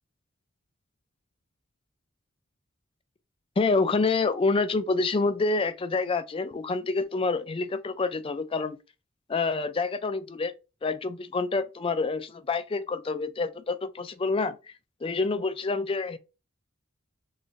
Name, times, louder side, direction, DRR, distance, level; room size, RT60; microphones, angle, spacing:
voice 1, 3.6-8.8 9.3-10.5 10.8-14.6 15.0-16.2, left 3 dB, 25° left, 0.4 m, -27 dB
3.8 x 2.5 x 3.3 m
head